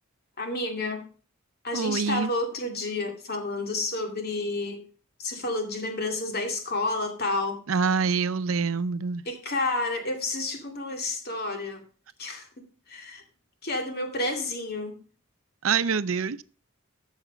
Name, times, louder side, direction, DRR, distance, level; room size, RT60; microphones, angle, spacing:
voice 1, 0.4-1.0 1.6-4.8 5.2-7.6 9.3-11.8 12.2-13.2 13.6-15.0, left 2 dB, 50° left, 2.4 m, -30 dB
voice 2, 1.7-2.3 7.7-9.2 15.6-16.4, right 5 dB, 90° right, 0.6 m, -26 dB
14.0 x 6.5 x 5.0 m
head